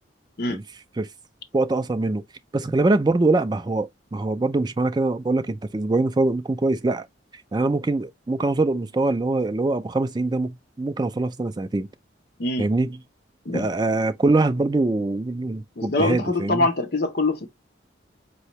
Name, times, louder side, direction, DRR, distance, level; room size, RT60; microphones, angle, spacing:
voice 1, 1.5-2.2 2.5-7.1 7.5-11.9 12.6-13.0 13.5-16.7, right 2 dB, 20° right, 0.3 m, -23 dB
voice 2, 15.8-17.5, left 2 dB, 50° left, 0.8 m, -24 dB
4.2 x 2.8 x 3.0 m
head